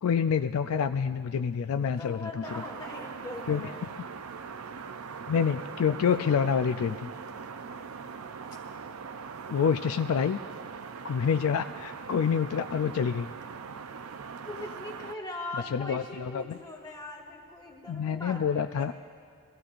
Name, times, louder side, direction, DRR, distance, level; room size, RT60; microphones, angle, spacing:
voice 1, 0.0-2.3 3.5-3.6 5.3-7.1 9.5-10.4 11.0-13.3 15.7-16.6 17.9-18.9, left 7 dB, 70° left, 8 dB, 0.4 m, -27 dB
voice 2, 1.7-3.8 14.4-18.9, left 2 dB, 20° left, -2 dB, 1.8 m, -41 dB
sound 1, 2.4-15.2, right 5 dB, 70° right, 0.5 m, -41 dB
22.0 x 15.5 x 2.5 m, 2.4 s
head